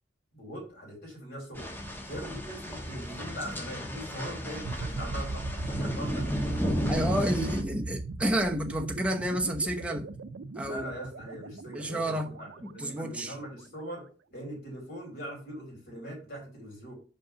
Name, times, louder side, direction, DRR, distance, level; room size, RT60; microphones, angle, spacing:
voice 1, 0.3-1.7 2.1-6.3 10.6-14.0 14.3-16.9, equal, 55° left, 4.2 m, -41 dB
sound 1, 1.5-7.6, equal, 10° left, 1.2 m, -33 dB
sound 2, 4.6-13.4, right 3 dB, 85° right, 0.5 m, -38 dB
voice 2, 6.9-10.1 10.6-10.9 11.7-12.3 12.6-13.3, right 1 dB, 5° right, 0.8 m, -30 dB
5.3 x 5.3 x 5.7 m
head